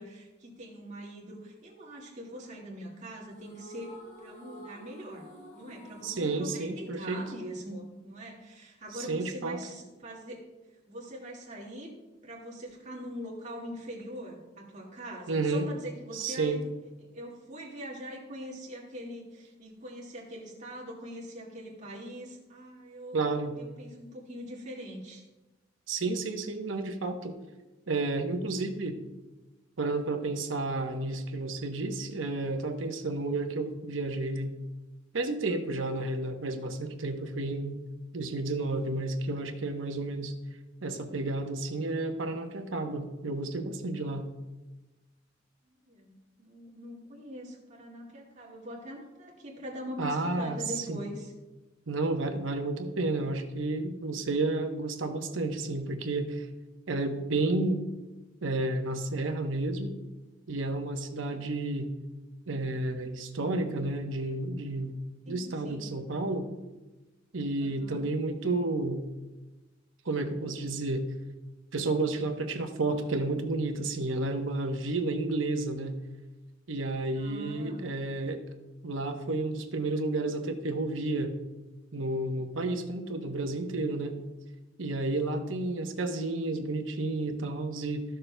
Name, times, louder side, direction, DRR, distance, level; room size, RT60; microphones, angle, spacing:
voice 1, 0.0-5.3 5.5-10.5 10.9-11.9 12.2-16.6 17.0-23.2 23.6-25.2 45.7-51.3 65.3-65.9 67.6-68.1 77.1-77.9, equal, 40° right, -3 dB, 1.9 m, -43 dB
sound 1, 3.3-7.7, right 1 dB, 35° left, 1.9 m, -50 dB
voice 2, 6.0-7.3 8.9-9.6 15.3-15.7 16.1-16.7 23.1-23.6 25.9-27.4 27.9-29.0 29.8-34.5 35.1-37.8 38.1-40.3 40.8-44.3 50.0-51.0 51.9-56.5 56.9-57.8 58.4-60.0 60.5-61.9 62.5-65.0 65.3-66.5 67.3-69.0 70.0-71.0 71.7-76.0 76.7-78.4 78.8-81.3 81.9-84.2 84.8-88.0, right 2 dB, 90° right, 6 dB, 0.9 m, -31 dB
14.0 x 6.7 x 2.2 m, 1.1 s
head